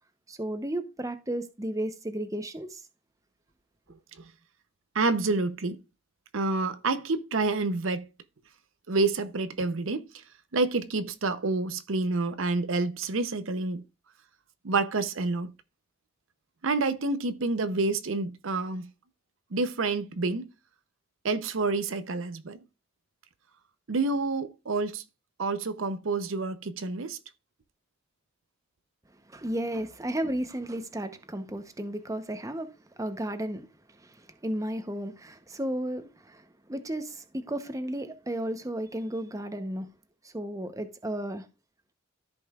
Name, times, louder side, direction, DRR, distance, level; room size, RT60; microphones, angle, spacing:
voice 1, 0.3-2.8 29.3-32.7 33.0-33.7 34.0-39.9 40.2-41.5, right 1 dB, 15° right, 0.8 m, -33 dB
voice 2, 4.9-5.8 6.3-8.1 8.9-10.1 10.5-13.8 14.6-15.5 16.6-18.9 19.5-20.5 21.2-22.6 23.9-25.0 25.4-27.2, right 3 dB, 75° right, 0.7 m, -28 dB
14.0 x 5.4 x 2.4 m
head